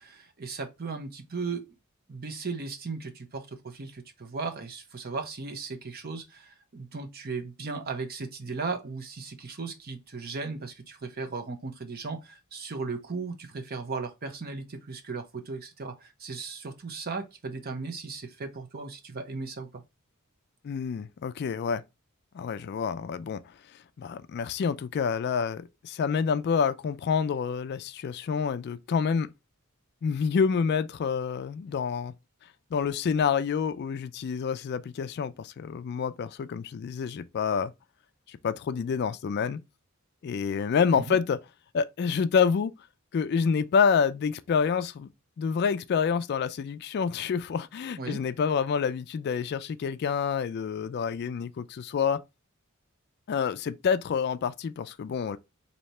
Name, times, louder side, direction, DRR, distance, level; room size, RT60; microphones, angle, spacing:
voice 1, 0.0-1.7 2.1-19.8 41.0-41.2 48.0-48.2, right 4 dB, 45° right, 0.7 m, -36 dB
voice 2, 20.6-21.8 22.3-23.4 24.0-29.3 30.0-32.1 32.7-37.7 38.3-39.6 40.2-41.4 41.7-42.8 43.1-45.1 45.4-52.2 53.3-55.4, left 6 dB, 50° left, 0.3 m, -28 dB
3.2 x 2.8 x 4.1 m
head